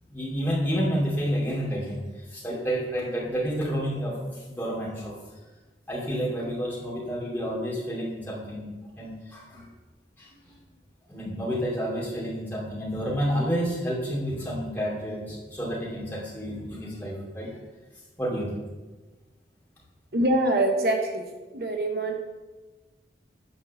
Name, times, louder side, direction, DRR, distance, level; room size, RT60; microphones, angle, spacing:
voice 1, 0.1-5.2 5.9-9.7 10.2-10.3 11.1-17.5 18.2-18.6, equal, 10° left, -6 dB, 2.7 m, -30 dB
voice 2, 20.1-22.1, right 1 dB, 55° right, 3 dB, 0.9 m, -25 dB
9.9 x 4.5 x 6.8 m, 1.2 s
head